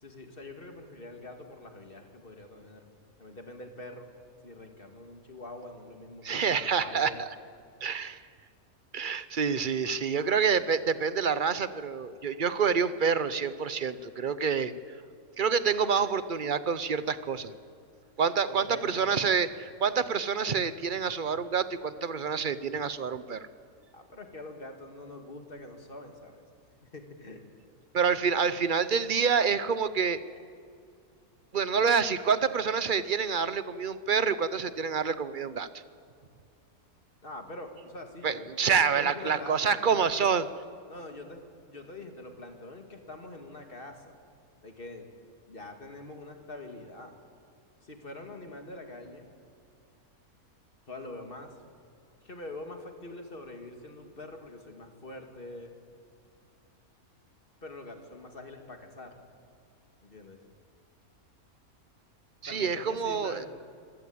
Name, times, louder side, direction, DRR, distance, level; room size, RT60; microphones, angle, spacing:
voice 1, 0.0-2.8 3.2-4.1 4.4-7.2 18.5-19.2 23.9-26.4 26.9-27.5 37.2-40.4 40.9-44.0 44.6-45.1 45.5-47.1 47.8-49.3 50.9-51.5 52.2-55.7 57.6-59.2 60.0-60.4 62.5-63.5, left 2 dB, 35° left, 4 dB, 2.4 m, -44 dB
voice 2, 6.2-7.3 7.8-8.2 8.9-14.7 15.4-17.5 18.2-23.4 27.9-30.2 31.5-35.7 38.2-40.4 62.4-63.4, right 6 dB, 45° right, 14 dB, 0.7 m, -27 dB
24.5 x 17.0 x 8.6 m, 2.3 s
omnidirectional pair, 1.6 m